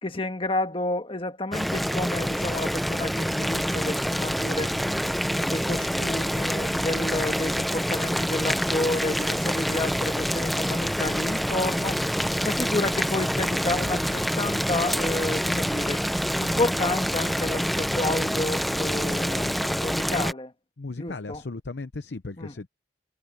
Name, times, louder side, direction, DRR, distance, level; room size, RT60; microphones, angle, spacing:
voice 1, 0.0-4.7 5.3-12.1 12.4-16.0 16.4-20.5 21.0-21.4 22.4-22.5, left 2 dB, 30° left, 1.6 m, -30 dB
Boiling, 1.5-20.3, equal, ahead, 0.8 m, -26 dB
voice 2, 20.8-22.7, left 3 dB, 70° left, 0.7 m, -36 dB
head